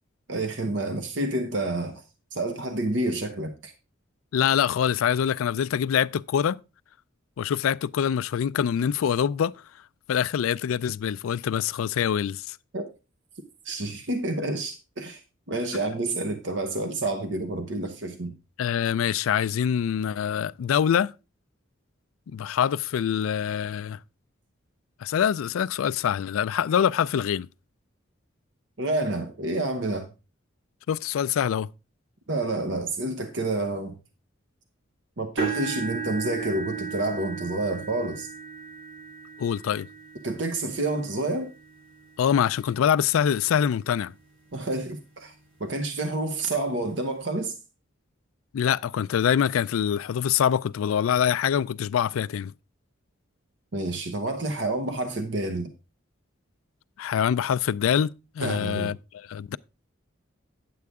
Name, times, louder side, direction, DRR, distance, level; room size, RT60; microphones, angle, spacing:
voice 1, 0.3-2.0 2.3-3.7 12.7-12.8 13.6-15.2 15.5-18.3 28.8-30.1 32.3-34.0 35.2-38.3 40.2-41.5 44.5-45.3 45.6-47.5 53.7-55.7 58.4-58.9, right 2 dB, 60° right, 0.9 m, -29 dB
voice 2, 4.3-6.6 7.4-9.5 10.1-12.6 18.6-21.1 22.3-24.0 25.0-27.5 30.9-31.7 39.4-39.9 42.2-44.1 48.5-52.5 57.0-59.6, left 8 dB, 90° left, 0.3 m, -25 dB
sound 1, 35.4-43.4 44.0-44.3 44.7-44.8 46.2-46.3, right 5 dB, 80° right, 3.6 m, -36 dB
9.5 x 7.7 x 3.5 m
head